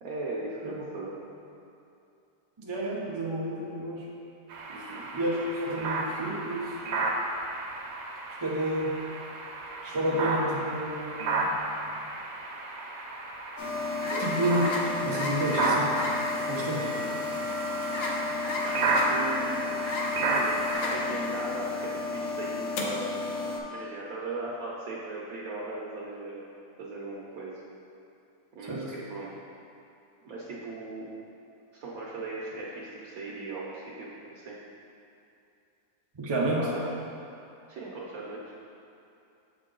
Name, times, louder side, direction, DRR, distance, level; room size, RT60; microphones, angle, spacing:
voice 1, 0.0-1.2 4.7-5.0 14.0-14.2 16.7-17.1 18.6-19.6 20.2-23.1 23.7-26.5 26.8-27.5 28.5-29.4 30.2-31.1 31.7-34.6 36.3-36.9 37.7-38.4, right 2 dB, 65° right, -5 dB, 1.1 m, -38 dB
voice 2, 2.6-4.1 5.1-6.8 8.4-8.9 9.8-11.5 14.2-15.9 16.5-16.8 28.6-28.9 36.2-36.6, right 1 dB, 45° right, -4 dB, 0.3 m, -30 dB
sound 1, 4.5-20.7, right 2 dB, 85° right, 1.3 m, -32 dB
sound 2, 13.6-23.6, left 3 dB, 60° left, 0.6 m, -31 dB
6.9 x 4.5 x 3.8 m, 2.7 s
omnidirectional pair, 1.8 m